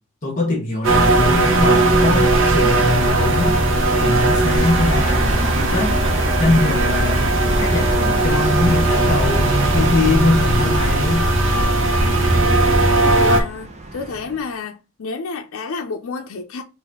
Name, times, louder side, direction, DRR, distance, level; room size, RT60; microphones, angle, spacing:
voice 1, 0.2-3.6 3.9-6.0 6.4-11.3, left 2 dB, 35° left, 1.1 m, -23 dB
sound 1, 0.8-13.4, right 2 dB, 65° right, 1.0 m, -17 dB
sound 2, 1.3-14.5, right 2 dB, 30° right, 0.8 m, -30 dB
voice 2, 13.1-14.7 15.0-16.6, left 4 dB, 85° left, 0.5 m, -29 dB
4.0 x 2.5 x 3.7 m
head